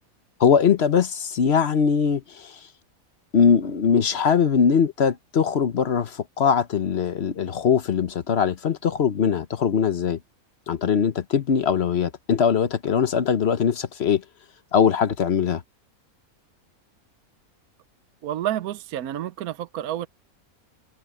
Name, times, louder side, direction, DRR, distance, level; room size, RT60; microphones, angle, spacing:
voice 1, 0.4-2.7 3.3-10.2 10.7-14.2 14.7-15.6, left 7 dB, 50° left, 1.0 m, -21 dB
voice 2, 18.2-20.1, right 12 dB, 80° right, 1.2 m, -29 dB
omnidirectional pair, 1.6 m